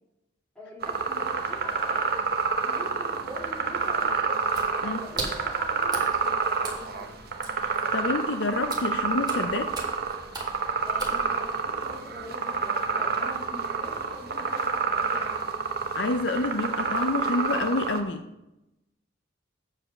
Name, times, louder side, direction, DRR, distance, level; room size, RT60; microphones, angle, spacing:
voice 1, 0.5-2.3 2.6-4.4 4.8-7.1 10.8-15.3, equal, 5° left, -5 dB, 2.7 m, -43 dB
sound 1, 0.8-18.0, right 5 dB, 55° right, 0.8 m, -28 dB
Water / Splash splatter, 4.4-11.7, right 3 dB, 20° right, 1.6 m, -40 dB
voice 2, 7.6-9.7 15.9-18.2, left 2 dB, 65° left, 7 dB, 0.5 m, -28 dB
7.2 x 4.9 x 6.3 m, 0.92 s
head